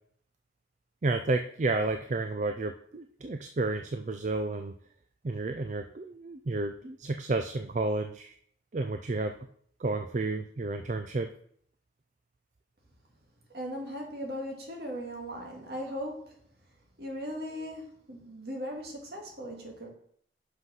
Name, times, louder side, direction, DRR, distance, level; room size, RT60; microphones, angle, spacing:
voice 1, 1.0-4.7 5.2-8.3 8.7-9.4 9.8-11.3, right 2 dB, 40° right, 7 dB, 0.4 m, -31 dB
voice 2, 13.5-16.4 17.0-19.9, equal, 60° right, 0 dB, 2.0 m, -38 dB
5.9 x 5.7 x 5.6 m, 0.62 s
head